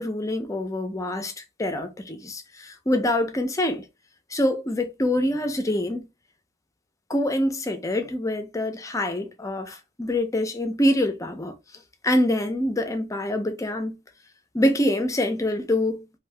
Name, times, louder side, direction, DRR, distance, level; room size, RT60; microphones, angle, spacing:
voice 1, 0.0-3.8 4.3-6.1 7.1-11.5 12.0-14.0 14.5-16.2, left 1 dB, 15° left, 0.5 m, -25 dB
2.7 x 2.6 x 3.3 m
head